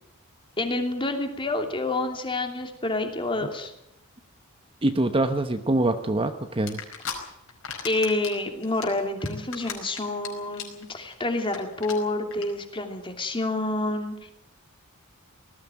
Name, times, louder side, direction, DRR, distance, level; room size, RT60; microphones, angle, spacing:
voice 1, 0.6-3.7 7.8-14.3, left 2 dB, 25° left, 4 dB, 2.8 m, -28 dB
voice 2, 4.8-6.8, right 2 dB, 25° right, 8 dB, 1.0 m, -24 dB
sound 1, 6.7-7.1 7.5-8.3 8.6-10.3 10.5-10.8 11.1-11.2 11.4-11.6 11.8-11.9 12.3-12.4, left 7 dB, 65° left, 5.0 m, -35 dB
19.0 x 15.0 x 9.2 m, 0.80 s
head